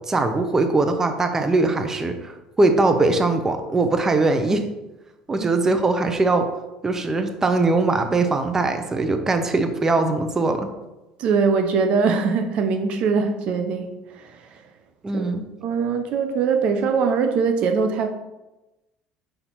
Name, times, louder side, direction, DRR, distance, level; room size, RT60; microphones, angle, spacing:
voice 1, 0.1-4.6 5.3-6.5 6.8-10.7 15.0-15.4, right 3 dB, 20° right, 7 dB, 0.7 m, -21 dB
voice 2, 11.2-14.4 15.1-15.2 15.6-18.1, right 5 dB, 60° right, 7 dB, 0.6 m, -22 dB
5.1 x 4.3 x 4.5 m, 1.0 s
supercardioid pair, 100°, 2 cm